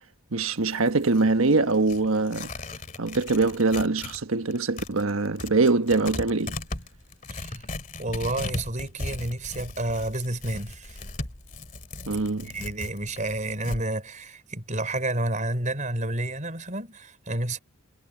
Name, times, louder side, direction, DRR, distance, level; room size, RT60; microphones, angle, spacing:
voice 1, 0.3-2.5 3.0-6.6 12.1-12.5, right 3 dB, 85° right, 1.3 m, -23 dB
Tearing, 0.5-4.2 4.5-13.8, left 2 dB, 40° left, 2.3 m, -38 dB
voice 2, 7.3-7.7 8.0-11.0 12.5-17.6, right 1 dB, 35° right, 5.1 m, -30 dB
head